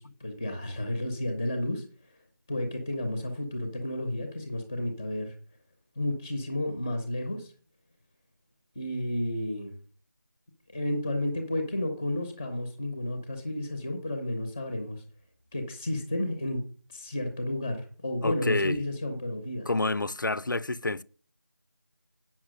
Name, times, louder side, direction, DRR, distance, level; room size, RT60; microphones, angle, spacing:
voice 1, 0.0-1.8 2.5-5.3 5.9-7.5 8.7-9.7 10.7-15.0 15.5-16.6 16.9-19.7, left 1 dB, 10° left, 0.9 m, -32 dB
voice 2, 18.2-18.8 19.7-21.0, left 2 dB, 70° left, 0.6 m, -28 dB
8.8 x 6.0 x 6.3 m
figure-of-eight pair, 170°, 11 cm